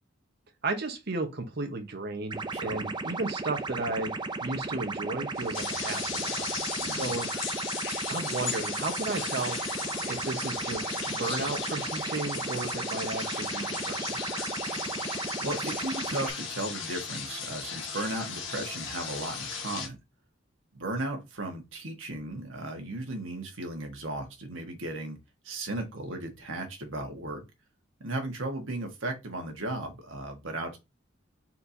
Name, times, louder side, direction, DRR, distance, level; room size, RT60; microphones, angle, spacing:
voice 1, 0.6-4.1 4.4-6.5 6.8-7.3 8.1-9.6 10.1-14.2, right 3 dB, 55° right, 1.0 m, -34 dB
sound 1, 2.3-16.3, right 3 dB, 25° right, 0.5 m, -35 dB
voice 2, 2.5-2.8 6.8-7.1 15.4-20.0 20.7-25.2 25.4-27.4 28.0-30.8, right 2 dB, 80° right, 1.4 m, -35 dB
sound 2, 5.3-19.9, left 6 dB, 75° left, 1.3 m, -36 dB
4.3 x 4.2 x 2.7 m
head